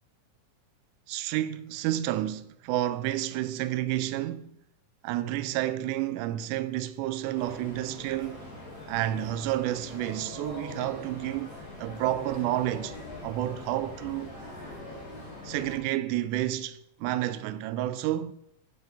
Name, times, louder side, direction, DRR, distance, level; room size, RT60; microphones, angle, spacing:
voice 1, 1.1-4.6 5.0-8.5 8.9-11.5 11.8-13.0 13.2-14.3 15.4-18.3, right 13 dB, 80° right, 2.0 m, -30 dB
sound 1, 7.3-15.8, left 2 dB, 30° left, 3.3 m, -43 dB
11.0 x 5.3 x 3.4 m
omnidirectional pair, 3.7 m